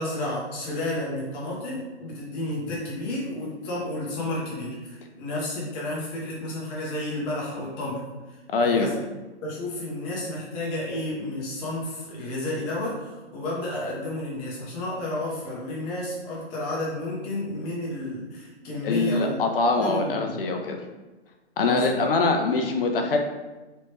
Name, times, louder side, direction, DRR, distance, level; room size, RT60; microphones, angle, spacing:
voice 1, 0.0-9.0 9.4-19.4 19.8-20.4 21.6-22.0, left 1 dB, 20° left, -5 dB, 0.9 m, -31 dB
voice 2, 8.5-8.9 18.8-20.8 21.6-23.2, left 3 dB, 55° left, 3 dB, 0.5 m, -23 dB
3.2 x 3.0 x 3.0 m, 1.2 s
hypercardioid pair, 145°, 34 cm